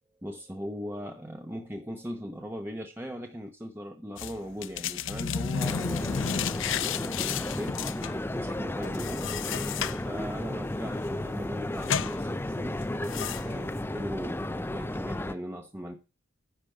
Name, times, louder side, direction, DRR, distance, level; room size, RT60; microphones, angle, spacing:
voice 1, 0.2-7.7 8.3-9.3 10.0-12.8 13.4-16.0, equal, 10° right, 0.9 m, -39 dB
sound 1, 4.2-13.8, left 7 dB, 60° left, 0.6 m, -34 dB
sound 2, 5.6-15.3, left 1 dB, 10° left, 0.5 m, -33 dB
10.5 x 5.2 x 7.7 m
head